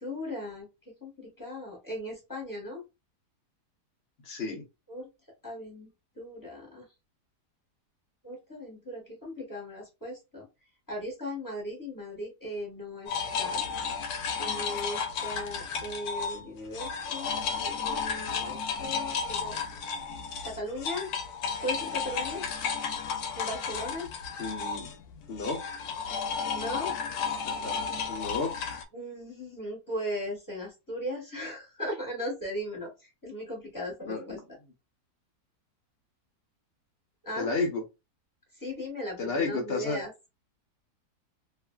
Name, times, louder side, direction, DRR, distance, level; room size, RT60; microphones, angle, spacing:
voice 1, 0.0-0.7 1.0-2.8 4.5-4.6 4.9-5.1 5.4-5.9 6.1-6.8 8.2-10.5 10.9-13.6 14.4-19.9 20.4-21.1 21.6-22.5 23.4-24.1 26.5-26.9 28.9-34.4 37.2-37.5 38.6-40.1, left 1 dB, 15° left, 1.2 m, -38 dB
voice 2, 4.2-4.6 24.4-24.9 25.3-25.6 27.6-27.8 28.1-28.5 34.0-34.4 37.4-37.8 39.2-40.0, left 3 dB, 50° left, 0.8 m, -31 dB
sound 1, 13.1-16.4 16.7-28.8, left 6 dB, 75° left, 1.1 m, -33 dB
3.0 x 2.5 x 2.2 m
omnidirectional pair, 1.7 m